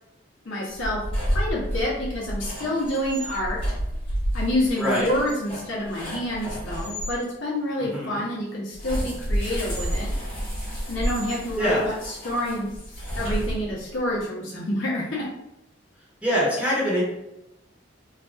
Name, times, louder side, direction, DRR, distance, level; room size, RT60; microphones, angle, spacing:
voice 1, 0.4-1.0 1.3-3.7 4.3-10.1 10.9-12.7 13.2-15.2, left 1 dB, 85° left, -5 dB, 1.1 m, -28 dB
sound 1, 0.7-7.2 8.7-14.0, equal, 30° left, 1.2 m, -30 dB
voice 2, 4.8-5.1 7.8-8.2 11.6-11.8 16.2-17.0, equal, 5° right, -7 dB, 1.0 m, -24 dB
3.3 x 2.4 x 2.5 m, 0.87 s
head